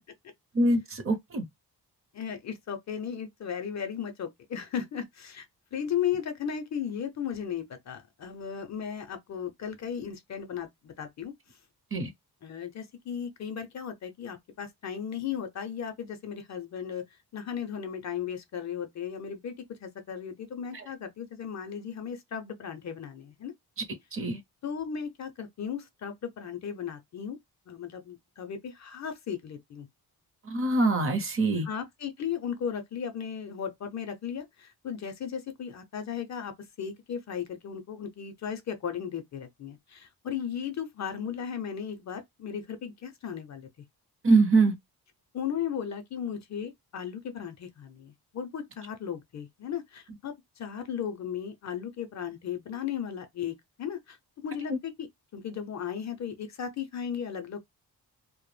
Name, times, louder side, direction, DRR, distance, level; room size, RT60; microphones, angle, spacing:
voice 1, 0.5-1.4 11.9-12.1 20.7-20.9 24.1-24.4 30.4-31.7 44.2-44.7 54.7-54.8, right 2 dB, 35° right, 0.6 m, -24 dB
voice 2, 2.1-5.5 5.7-11.3 12.4-17.0 17.3-23.5 24.6-27.4 27.7-29.9 31.6-43.7 45.3-57.6, left 8 dB, 45° left, 0.4 m, -36 dB
2.1 x 2.0 x 3.1 m
wide cardioid pair, 165°, 39 cm